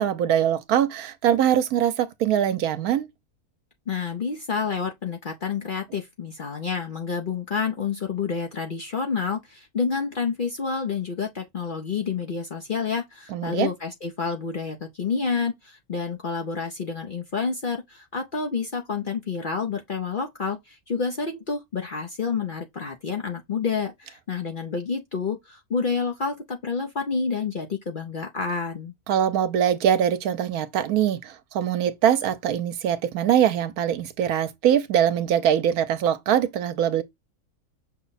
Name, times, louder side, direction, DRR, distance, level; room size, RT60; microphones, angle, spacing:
voice 1, 0.0-3.1 13.3-13.7 29.1-37.0, right 9 dB, 80° right, 1.2 m, -22 dB
voice 2, 3.9-28.9, left 5 dB, 50° left, 0.7 m, -29 dB
5.9 x 2.1 x 4.0 m
omnidirectional pair, 1.6 m